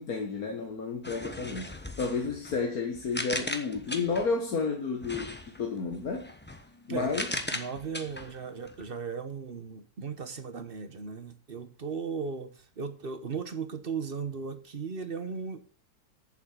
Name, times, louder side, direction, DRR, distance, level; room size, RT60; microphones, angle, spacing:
voice 1, 0.0-6.3 6.9-7.3, left 4 dB, 75° left, 1.8 m, -31 dB
sound 1, 1.0-4.4 5.0-8.9, left 1 dB, 10° left, 1.0 m, -38 dB
voice 2, 7.5-15.6, right 5 dB, 40° right, 1.2 m, -36 dB
8.5 x 7.5 x 6.4 m
omnidirectional pair, 1.6 m